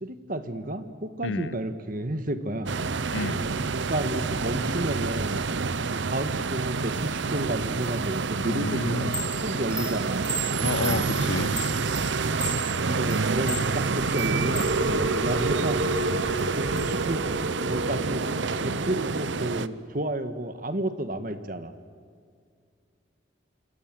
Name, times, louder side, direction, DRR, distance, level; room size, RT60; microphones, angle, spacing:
voice 1, 0.0-2.7 3.2-5.4 5.9-11.1 12.8-15.9 16.5-17.2 17.6-18.3 18.6-21.7, right 1 dB, 45° right, 9 dB, 1.6 m, -31 dB
voice 2, 1.2-1.5 3.1-3.5 8.5-9.2 10.6-11.6, left 3 dB, 75° left, 16 dB, 0.9 m, -30 dB
sound 1, 2.7-19.7, right 4 dB, 70° right, 0.7 m, -28 dB
sound 2, 4.5-19.7, right 2 dB, 85° right, 2.2 m, -34 dB
Chime, 8.9-14.8 15.2-16.9, right 2 dB, 5° right, 2.3 m, -36 dB
27.0 x 26.0 x 7.7 m, 2.2 s
head